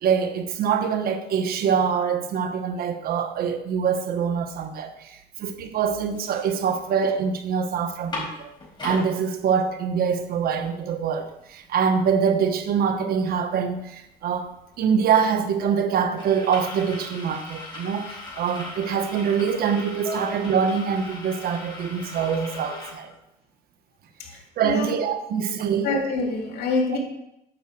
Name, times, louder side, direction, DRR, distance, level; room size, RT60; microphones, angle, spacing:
voice 1, 0.0-8.5 8.8-23.1 24.6-25.9, right 7 dB, 65° right, 7 dB, 1.3 m, -24 dB
sound 1, 5.5-5.6 5.9-7.1 7.5-7.6 7.9-9.1 9.7-9.8 10.1-22.9, left 2 dB, 25° left, 4.7 m, -39 dB
voice 2, 25.8-27.0, left 3 dB, 70° left, 1 dB, 2.8 m, -25 dB
9.4 x 5.7 x 7.6 m, 0.82 s
cardioid pair, 110°, 17 cm